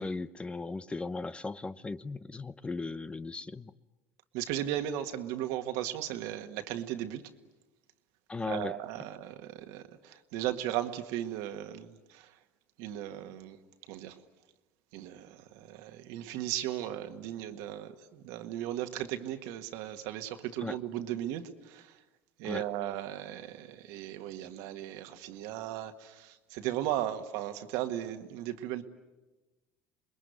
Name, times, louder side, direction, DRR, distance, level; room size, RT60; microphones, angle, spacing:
voice 1, 0.0-3.7 8.3-8.8 20.6-20.8 22.4-22.6, left 3 dB, 20° left, 0.8 m, -37 dB
voice 2, 4.3-7.2 8.4-12.4 12.8-13.6 13.9-14.2 14.9-22.0 22.4-28.8, right 12 dB, 75° right, 1.7 m, -36 dB
27.5 x 21.0 x 9.5 m
supercardioid pair, 85°, 6 cm